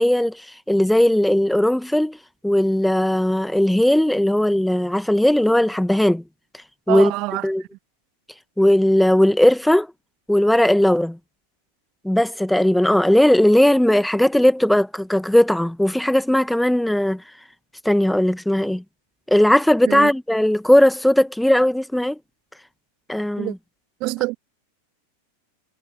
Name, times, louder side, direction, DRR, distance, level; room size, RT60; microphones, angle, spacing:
voice 1, 0.0-2.2 2.4-6.2 6.9-7.1 7.4-7.6 8.6-9.9 10.3-11.2 12.0-17.2 17.8-18.8 19.3-22.2 23.1-23.6, left 1 dB, ahead, 1.6 m, -18 dB
voice 2, 6.9-7.5 19.9-20.1 23.4-23.5 24.0-24.4, right 22 dB, 40° right, 0.9 m, -25 dB
figure-of-eight pair, 90°, 0 cm